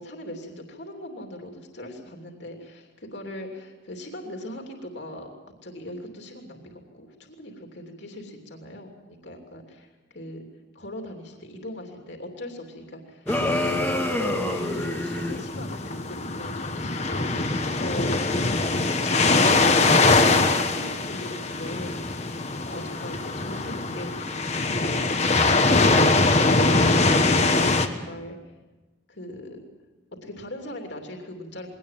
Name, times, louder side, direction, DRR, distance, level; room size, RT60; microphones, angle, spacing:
voice 1, 0.0-5.3 5.6-9.9 10.1-10.4 10.7-18.6 18.9-22.4 22.7-24.1 24.7-25.1 25.5-27.5 27.9-28.4 29.1-29.6 30.2-31.8, left 1 dB, 65° left, 2 dB, 3.0 m, -39 dB
sound 1, 13.3-27.9, left 3 dB, 35° left, 1.3 m, -23 dB
sound 2, 13.3-15.4, left 1 dB, 10° left, 1.9 m, -27 dB
22.0 x 18.5 x 7.5 m, 1.2 s
head